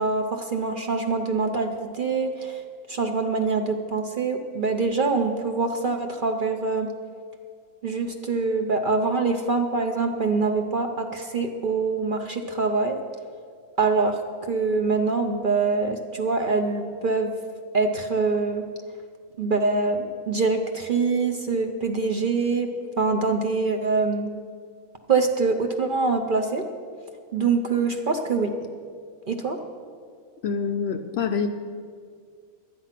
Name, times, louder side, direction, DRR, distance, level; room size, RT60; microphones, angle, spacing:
voice 1, 0.0-2.6 2.9-6.9 7.8-13.0 13.8-17.3 17.7-18.7 19.4-22.7 23.0-24.3 25.1-26.6 27.3-28.5 29.3-29.6, right 4 dB, 45° right, 4 dB, 0.7 m, -24 dB
voice 2, 30.4-31.5, left 6 dB, 60° left, 6 dB, 0.7 m, -26 dB
12.0 x 9.6 x 5.8 m, 2.1 s
omnidirectional pair, 1.5 m